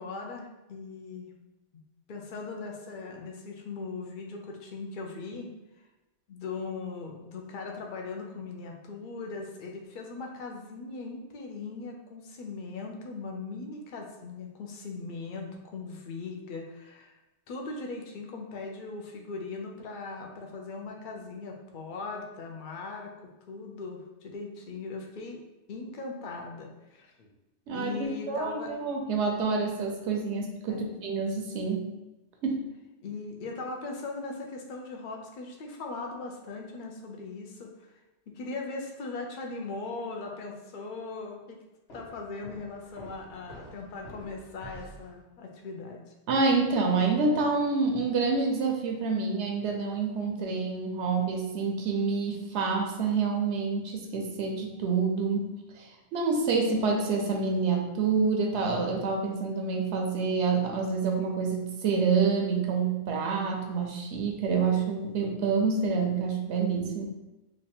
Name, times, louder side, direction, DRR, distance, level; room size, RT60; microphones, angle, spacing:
voice 1, 0.0-1.4 1.7-1.8 2.1-5.5 6.3-17.2 17.5-25.4 25.7-27.3 27.7-28.7 30.7-30.9 33.0-37.9 38.3-41.6 41.9-46.1, left 3 dB, 55° left, 1 dB, 0.7 m, -39 dB
voice 2, 27.7-31.9 32.4-32.7 46.3-55.5 55.7-67.1, right 4 dB, 75° right, 2 dB, 0.9 m, -27 dB
Walk footsteps, 41.9-45.2, right 1 dB, 85° left, 1.6 m, -48 dB
3.1 x 2.4 x 4.2 m, 1.0 s
omnidirectional pair, 1.2 m